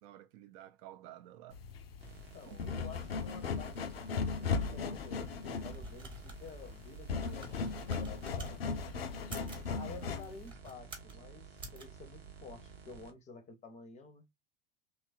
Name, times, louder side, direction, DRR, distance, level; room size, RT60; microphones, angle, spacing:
voice 1, 0.0-1.6 2.5-2.6 9.7-10.1, right 13 dB, 45° right, 0.4 m, -52 dB
sound 1, 1.5-10.5, left 5 dB, 80° left, 0.5 m, -37 dB
sound 2, 2.0-13.1, right 6 dB, 80° right, 0.8 m, -53 dB
voice 2, 2.3-7.6 7.8-8.8 9.7-14.3, left 5 dB, 25° left, 0.6 m, -51 dB
sound 3, 5.5-8.6 9.2-9.7 10.4-11.2 11.6-11.8, right 2 dB, 15° right, 1.0 m, -48 dB
2.9 x 2.3 x 2.5 m
figure-of-eight pair, 80°, 30 cm